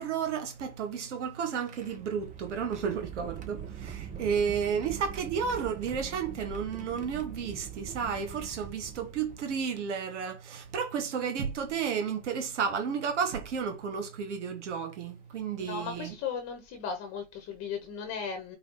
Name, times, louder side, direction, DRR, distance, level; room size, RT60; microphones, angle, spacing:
voice 1, 0.0-16.1, right 6 dB, 80° right, 0.9 m, -32 dB
sound 1, 0.5-9.8 10.7-10.8 12.3-12.5 13.3-13.5 15.1-15.2 15.6-15.8, right 9 dB, 20° right, 0.8 m, -43 dB
voice 2, 15.7-18.6, left 6 dB, 45° left, 1.0 m, -36 dB
4.9 x 2.3 x 3.1 m
hypercardioid pair, 95°, 36 cm